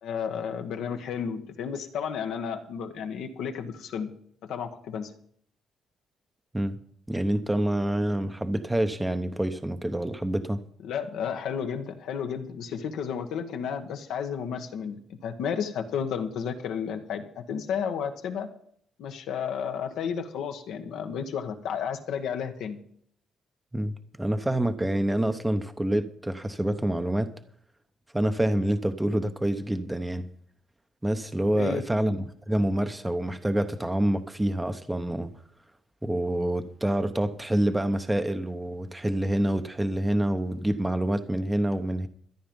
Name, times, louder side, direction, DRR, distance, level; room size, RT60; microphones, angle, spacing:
voice 1, 0.0-4.1 4.4-5.1 10.8-18.5 19.0-22.8 31.5-31.8, left 7 dB, 80° left, 1.4 m, -32 dB
voice 2, 7.1-10.6 23.7-27.3 28.1-30.3 31.0-35.3 36.0-42.1, right 1 dB, 10° right, 0.8 m, -27 dB
13.5 x 10.5 x 5.4 m
cardioid pair, 90°, 0 cm